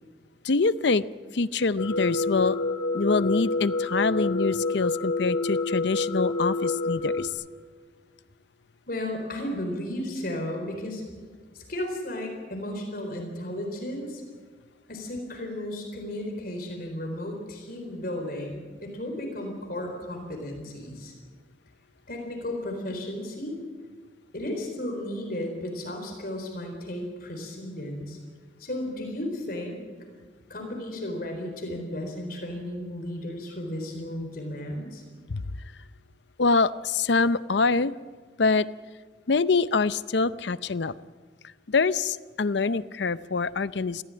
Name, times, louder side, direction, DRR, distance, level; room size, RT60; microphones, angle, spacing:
voice 1, 0.4-1.1 1.3-2.6 2.9-7.3 35.3-35.4 36.4-37.9 38.4-38.7 39.3-40.9 41.7-44.0, left 4 dB, 70° left, 16 dB, 0.6 m, -25 dB
sound 1, 1.8-7.3, left 2 dB, 90° left, 2.1 m, -28 dB
voice 2, 8.9-11.0 11.5-14.2 14.9-21.1 22.1-23.6 24.3-28.2 28.6-29.8 30.5-35.0, left 1 dB, 50° left, 3 dB, 4.1 m, -34 dB
21.5 x 15.5 x 8.9 m, 1.5 s
head